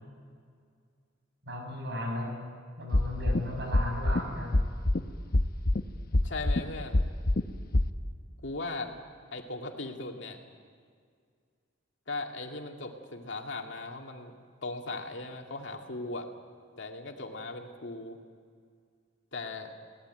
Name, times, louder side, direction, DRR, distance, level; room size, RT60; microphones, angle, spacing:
voice 1, 1.4-2.5 2.8-4.6, left 1 dB, 60° right, 2 dB, 6.6 m, -36 dB
sound 1, 2.9-3.4 3.7-4.2 4.5-5.0 5.3-5.8 6.1-6.6 6.9-7.4 7.7-7.8, left 1 dB, 50° left, 0.9 m, -23 dB
voice 2, 6.2-7.1 8.4-8.9 9.3-10.4 12.1-14.3 14.6-16.3 16.8-18.2 19.3-19.7, left 3 dB, 65° left, 2 dB, 2.4 m, -38 dB
22.5 x 18.0 x 9.1 m, 2.1 s
head